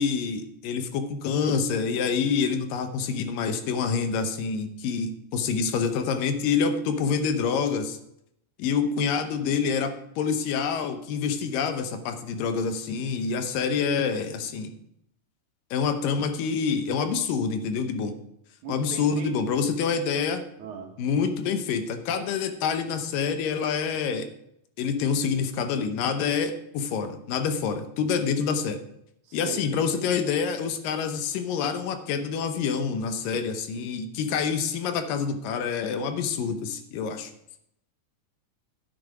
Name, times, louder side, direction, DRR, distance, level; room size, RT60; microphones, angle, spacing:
voice 1, 0.0-8.0 8.6-14.7 15.7-18.1 18.7-20.4 21.0-24.3 24.8-28.8 29.3-37.3, left 6 dB, 80° left, 8 dB, 2.6 m, -27 dB
voice 2, 18.6-19.3 20.6-21.0 29.2-29.8, right 6 dB, 65° right, 2 dB, 2.6 m, -39 dB
10.0 x 8.0 x 4.8 m, 0.77 s
omnidirectional pair, 3.9 m